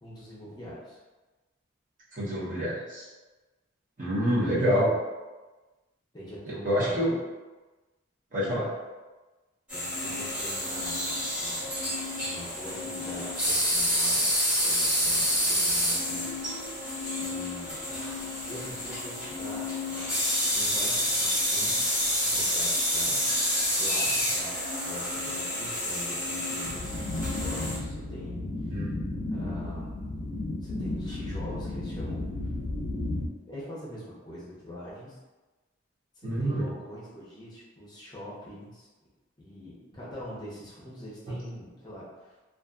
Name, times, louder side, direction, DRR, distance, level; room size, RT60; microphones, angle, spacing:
voice 1, 0.0-1.0 4.6-4.8 6.1-7.0 9.7-11.7 12.2-14.3 14.6-16.3 17.2-17.9 18.5-22.0 22.3-23.3 23.8-24.5 24.8-28.7 29.3-30.1 30.6-32.2 32.9-33.0 33.5-35.2 36.2-38.9 39.4-42.4, left 1 dB, 20° left, -6 dB, 0.6 m, -43 dB
voice 2, 2.1-3.0 4.0-4.9 6.6-7.1 8.3-8.7 28.7-28.9 36.2-36.7 41.3-41.4, equal, 40° right, -8 dB, 0.8 m, -27 dB
sound 1, 9.7-27.8, equal, 10° right, 1.2 m, -28 dB
sound 2, 26.6-33.3, left 2 dB, 65° left, 0.3 m, -33 dB
2.4 x 2.4 x 2.3 m, 1.2 s
head